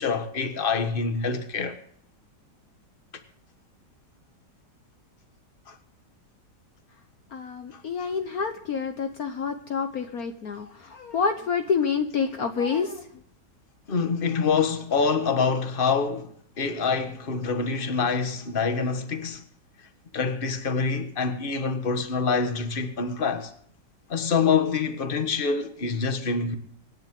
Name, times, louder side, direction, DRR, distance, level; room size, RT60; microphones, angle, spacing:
voice 1, 0.0-1.8 5.7-5.8 7.7-7.8 13.9-19.4 20.1-23.5 24.1-26.6, left 5 dB, 30° left, 1.6 m, -26 dB
voice 2, 7.3-13.0, left 6 dB, 60° left, 1.5 m, -28 dB
25.5 x 10.5 x 3.7 m
omnidirectional pair, 1.9 m